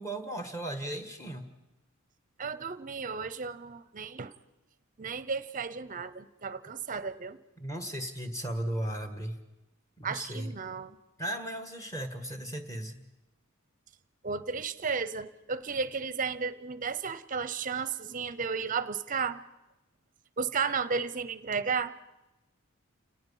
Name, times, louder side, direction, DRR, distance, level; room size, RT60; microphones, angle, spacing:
voice 1, 0.0-1.5 7.6-9.4 10.0-10.5 11.2-13.1, right 1 dB, 15° left, 7 dB, 1.5 m, -36 dB
voice 2, 2.4-4.3 5.0-7.4 10.0-11.0 14.2-19.4 20.4-21.9, right 5 dB, 40° right, 15 dB, 0.7 m, -33 dB
29.0 x 18.5 x 5.6 m, 0.99 s
head